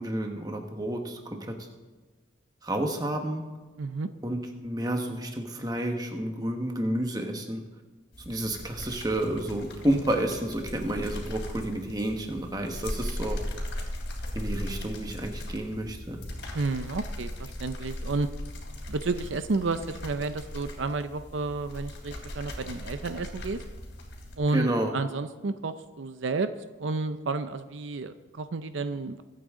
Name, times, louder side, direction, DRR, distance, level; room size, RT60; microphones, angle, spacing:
voice 1, 0.0-1.6 2.6-3.4 4.2-7.6 8.2-13.4 14.3-16.2 24.5-24.9, right 1 dB, 20° right, 3 dB, 1.3 m, -30 dB
voice 2, 3.8-4.1 16.5-18.3 18.9-23.6 24.4-26.5 26.8-29.2, right 3 dB, 75° right, 10 dB, 0.5 m, -31 dB
sound 1, 8.1-24.4, left 1 dB, 65° left, 3.1 m, -38 dB
22.5 x 8.8 x 3.7 m, 1.3 s
head